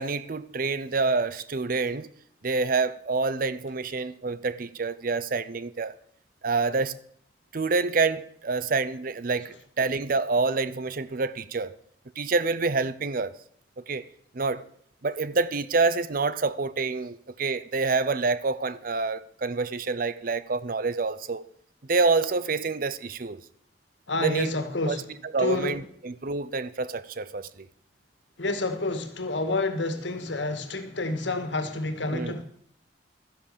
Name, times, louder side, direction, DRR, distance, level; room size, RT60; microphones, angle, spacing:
voice 1, 0.0-2.1 2.4-6.0 6.4-7.0 7.5-11.7 12.2-13.3 13.8-14.0 14.3-14.7 15.0-21.5 21.9-23.4 24.2-24.5 24.9-25.0 25.3-27.7 32.1-32.3, right 3 dB, 50° right, 0.7 m, -27 dB
voice 2, 24.1-25.1 25.4-25.8 28.4-32.4, left 2 dB, 75° left, 1.8 m, -29 dB
13.0 x 10.5 x 6.8 m
head